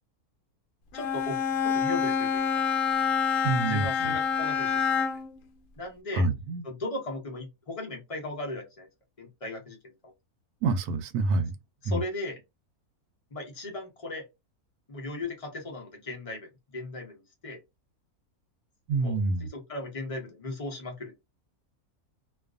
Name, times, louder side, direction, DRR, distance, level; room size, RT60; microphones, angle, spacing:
Bowed string instrument, 0.9-5.4, left 6 dB, 70° left, 0.9 m, -27 dB
voice 1, 0.9-1.4 1.6-2.5 3.7-5.1 5.8-6.3 6.6-8.9 9.2-9.8 11.8-12.4 13.3-14.3 14.9-17.6 19.0-21.1, left 2 dB, 40° left, 0.5 m, -37 dB
voice 2, 3.4-3.9 6.2-6.6 10.6-11.6 11.9-12.0 18.9-19.5, right 3 dB, 90° right, 1.1 m, -26 dB
2.5 x 2.3 x 2.4 m
omnidirectional pair, 1.6 m